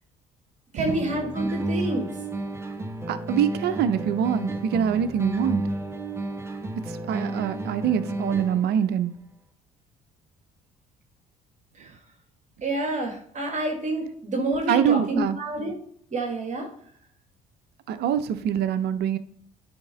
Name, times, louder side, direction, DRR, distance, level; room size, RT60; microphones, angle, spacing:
voice 1, 0.7-2.1 11.8-11.9 12.6-15.7 16.1-16.7, right 2 dB, 40° right, 2 dB, 1.6 m, -28 dB
sound 1, 0.9-8.8, right 2 dB, 15° right, 1.0 m, -31 dB
voice 2, 3.1-5.6 6.9-9.1 14.7-15.4 17.9-19.2, right 9 dB, 60° right, 12 dB, 0.7 m, -24 dB
9.9 x 3.6 x 3.9 m, 0.63 s
hypercardioid pair, 60°, 19 cm